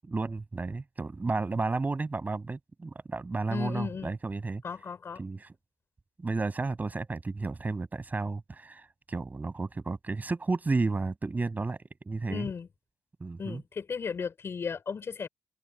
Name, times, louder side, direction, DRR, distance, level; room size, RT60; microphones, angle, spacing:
voice 1, 0.0-4.6 5.2-5.4 6.2-8.8 9.1-11.8 12.1-12.5 13.2-13.6, right 3 dB, 35° right, 7.3 m, -32 dB
voice 2, 3.5-4.1 4.6-5.2 12.3-12.7 13.4-15.3, left 6 dB, 55° left, 6.3 m, -35 dB
supercardioid pair, 55°, 5 cm